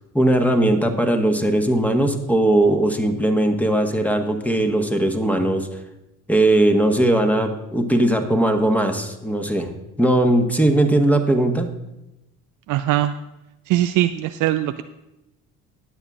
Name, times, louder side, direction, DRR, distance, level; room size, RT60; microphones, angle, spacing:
voice 1, 0.1-5.7 6.3-9.7 10.0-11.7, right 1 dB, 5° left, 5 dB, 1.4 m, -19 dB
voice 2, 12.7-13.1 13.7-14.8, right 13 dB, 45° right, 9 dB, 0.5 m, -21 dB
20.0 x 8.0 x 2.5 m, 0.94 s
hypercardioid pair, 55°, 43 cm